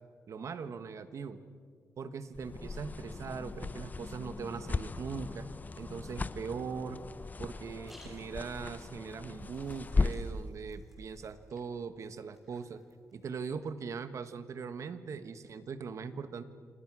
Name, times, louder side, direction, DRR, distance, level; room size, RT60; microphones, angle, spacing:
voice 1, 0.3-1.4 2.0-5.5 5.8-7.0 7.4-12.8 13.1-16.4, right 5 dB, 60° right, 11 dB, 1.4 m, -40 dB
sound 1, 2.3-10.4, left 3 dB, 30° left, 0.8 m, -37 dB
sound 2, 7.7-13.6, equal, 5° right, 6.0 m, -63 dB
28.0 x 27.5 x 6.3 m, 2.1 s
cardioid pair, 105°, 6 cm